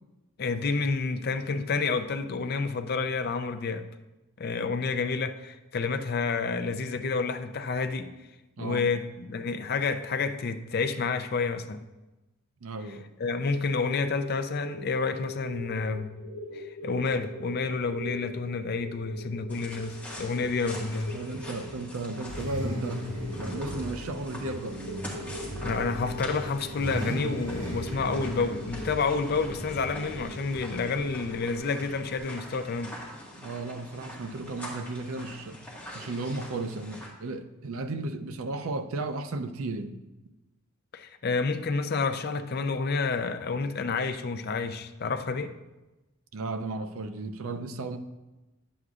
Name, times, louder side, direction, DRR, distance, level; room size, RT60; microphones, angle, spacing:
voice 1, 0.4-3.8 4.4-8.1 8.6-11.8 13.2-16.1 16.5-21.2 25.6-33.0 40.9-45.5, left 4 dB, 45° left, 0.4 m, -29 dB
voice 2, 12.6-13.1 21.1-23.1 23.4-24.8 33.4-35.7 35.9-40.0 46.3-48.0, right 2 dB, 70° right, 0.5 m, -35 dB
sound 1, 13.6-31.9, left 1 dB, 80° left, 0.9 m, -43 dB
sound 2, 19.5-37.1, equal, 10° left, 1.6 m, -44 dB
Car / Idling / Accelerating revving vroom, 20.1-32.2, equal, 50° right, 2.8 m, -38 dB
10.5 x 7.9 x 2.4 m
head